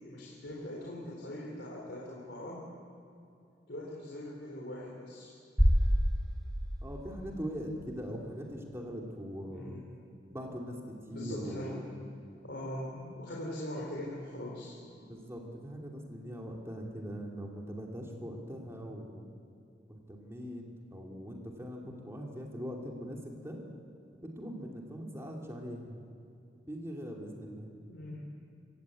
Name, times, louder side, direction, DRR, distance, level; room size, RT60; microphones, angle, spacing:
voice 1, 0.0-2.6 3.7-5.3 9.4-9.9 11.1-11.8 12.4-14.8 27.9-28.2, left 1 dB, 75° left, -3 dB, 3.7 m, -41 dB
sound 1, 5.6-7.7, equal, ahead, 3.4 m, -28 dB
voice 2, 6.8-9.8 10.3-12.0 15.0-19.2 19.9-20.6 20.9-23.6 24.1-26.1 26.7-27.7, equal, 15° right, 0 dB, 2.7 m, -41 dB
25.0 x 16.0 x 8.5 m, 2.7 s
head